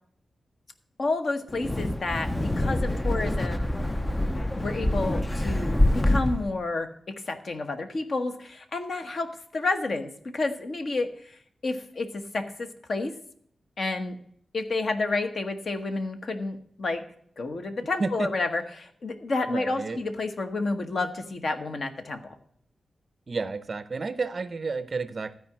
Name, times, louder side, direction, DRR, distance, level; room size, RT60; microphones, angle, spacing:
voice 1, 1.0-3.7 4.6-11.4 11.6-13.1 13.8-14.2 14.5-17.0 17.4-22.4, left 3 dB, 45° left, 7 dB, 1.1 m, -30 dB
Wind, 1.5-6.6, left 1 dB, 10° left, 0.4 m, -26 dB
voice 2, 19.5-20.0 23.3-25.3, right 4 dB, 35° right, 13 dB, 0.5 m, -31 dB
13.0 x 4.8 x 7.2 m, 0.63 s
wide cardioid pair, 175°, 0 cm